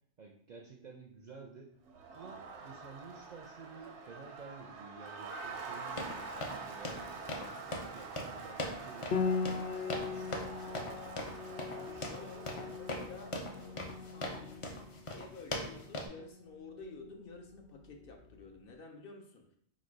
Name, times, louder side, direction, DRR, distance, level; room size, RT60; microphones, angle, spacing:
voice 1, 0.2-1.7 2.1-7.6 7.9-10.6, right 4 dB, 55° right, 0 dB, 0.5 m, -52 dB
Crowd, 1.9-14.4, right 4 dB, 85° right, 0.9 m, -46 dB
sound 1, 6.0-16.1, left 1 dB, 40° left, 0.5 m, -41 dB
Piano, 9.1-18.4, left 5 dB, 90° left, 0.9 m, -40 dB
voice 2, 11.7-19.6, left 3 dB, 60° left, 3 dB, 0.8 m, -51 dB
4.0 x 2.3 x 4.6 m, 0.67 s
omnidirectional pair, 1.1 m